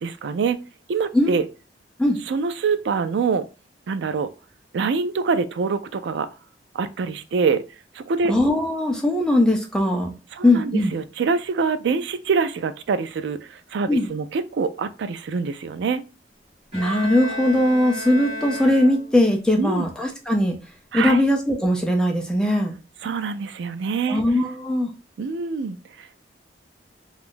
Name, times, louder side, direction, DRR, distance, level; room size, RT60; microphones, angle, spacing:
voice 1, 0.0-0.6 0.9-1.5 2.3-3.4 3.9-4.3 4.7-6.3 6.7-7.6 7.9-8.3 10.3-16.0 19.6-19.9 20.9-21.2 23.0-24.2 25.2-26.2, right 5 dB, 75° right, 0.4 m, -25 dB
voice 2, 8.3-10.1 10.4-10.9 13.9-14.1 16.7-20.6 20.9-22.7 24.1-24.9, left 1 dB, 5° left, 0.5 m, -20 dB
Bowed string instrument, 16.7-19.4, left 1 dB, 35° right, 1.2 m, -33 dB
2.6 x 2.3 x 3.6 m
head